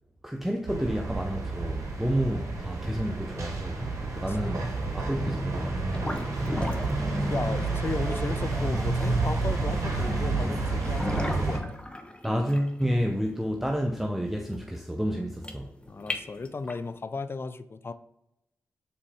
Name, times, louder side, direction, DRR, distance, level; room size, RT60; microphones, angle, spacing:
voice 1, 0.2-3.8 4.2-4.7 4.9-5.9 12.2-15.7, equal, 5° right, 0.8 m, -30 dB
sound 1, 0.7-11.6, right 3 dB, 65° right, 2.1 m, -30 dB
voice 2, 4.1-4.6 6.6-7.0 7.3-11.8 15.9-17.9, left 4 dB, 40° left, 0.5 m, -35 dB
sound 2, 5.9-16.9, left 1 dB, 20° left, 1.1 m, -36 dB
6.9 x 4.3 x 3.5 m
supercardioid pair, 40°, 6 cm